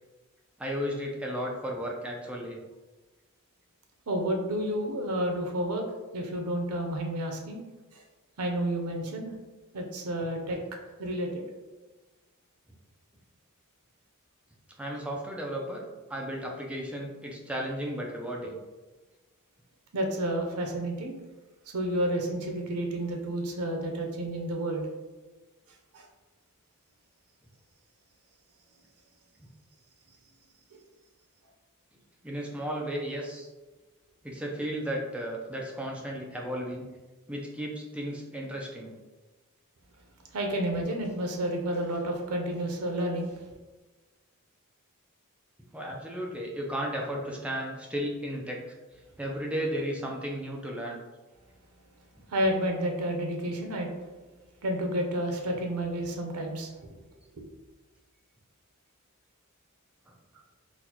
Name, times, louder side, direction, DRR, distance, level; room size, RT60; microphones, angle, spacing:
voice 1, 0.6-2.6 14.8-15.8 16.1-18.6 32.2-33.5 34.2-36.9 37.3-38.9 45.7-48.7 49.2-51.0 60.1-60.2, equal, 5° right, -1 dB, 0.4 m, -34 dB
voice 2, 4.1-5.8 6.1-7.6 7.9-8.0 8.4-9.3 9.7-10.6 11.0-11.4 19.9-21.1 21.7-24.9 25.9-26.0 40.3-43.3 52.3-53.9 54.6-56.9, right 1 dB, 90° right, 2 dB, 0.6 m, -30 dB
4.0 x 2.3 x 2.9 m, 1.2 s
head